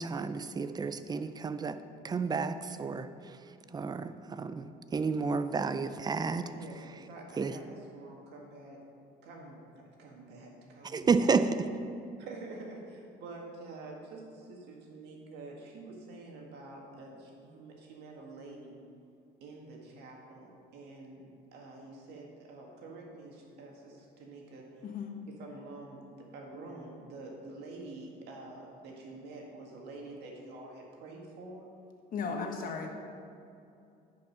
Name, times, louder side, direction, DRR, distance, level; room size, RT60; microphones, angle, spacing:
voice 1, 0.0-1.8 2.0-3.4 3.7-7.0 7.4-7.6 10.8-11.5, right 5 dB, 25° right, 11 dB, 0.5 m, -31 dB
voice 2, 6.3-6.8 7.1-8.8 9.2-11.4 12.2-18.8 19.4-24.7 25.3-31.7 32.3-32.5, right 2 dB, 80° right, 0 dB, 1.9 m, -47 dB
voice 3, 32.1-32.9, left 5 dB, 55° left, 2 dB, 1.4 m, -35 dB
10.5 x 5.4 x 5.6 m, 2.6 s
cardioid pair, 110°, 17 cm